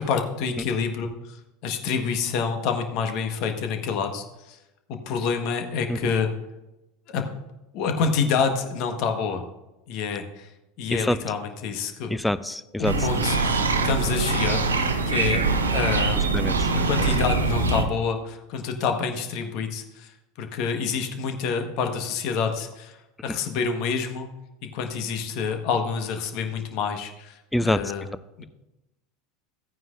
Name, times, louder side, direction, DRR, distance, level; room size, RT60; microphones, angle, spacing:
voice 1, 0.0-4.6 4.9-6.3 7.1-7.2 7.7-9.5 9.9-10.5 10.8-12.1 12.8-15.4 15.7-16.4 16.7-23.0 23.2-24.3 24.6-28.0, left 5 dB, 55° left, 5 dB, 1.4 m, -28 dB
voice 2, 12.1-12.9 16.3-16.7 27.5-27.8, left 1 dB, 5° left, 15 dB, 0.5 m, -25 dB
sound 1, 12.8-17.8, right 3 dB, 85° right, 0.9 m, -23 dB
15.5 x 9.3 x 2.6 m, 0.95 s
figure-of-eight pair, 80°, 0 cm